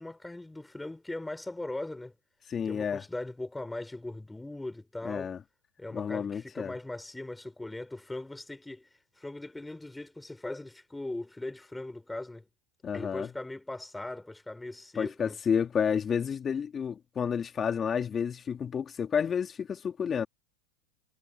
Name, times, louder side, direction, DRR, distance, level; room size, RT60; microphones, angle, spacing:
voice 1, 0.0-2.1 2.7-5.3 5.8-8.9 9.2-12.4 12.9-15.3, left 2 dB, 5° left, 4.2 m, -39 dB
voice 2, 2.5-3.0 5.0-5.4 5.9-6.7 12.8-13.3 14.9-20.3, left 7 dB, 25° left, 2.8 m, -30 dB
hypercardioid pair, 100°, 0 cm